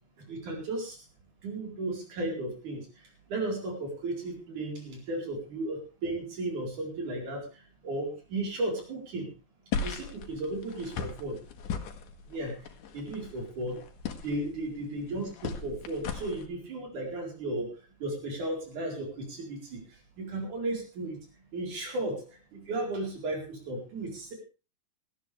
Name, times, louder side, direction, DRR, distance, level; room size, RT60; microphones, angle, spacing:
voice 1, 0.2-1.0 1.4-2.9 3.3-9.3 9.8-11.4 12.3-12.6 12.9-13.8 14.2-17.7 18.0-19.8 20.2-21.2 21.5-24.3, right 2 dB, 80° right, 1 dB, 5.9 m, -35 dB
sound 1, 9.7-16.5, left 5 dB, 85° left, 2.9 m, -38 dB
18.0 x 14.0 x 3.4 m, 0.32 s
omnidirectional pair, 3.5 m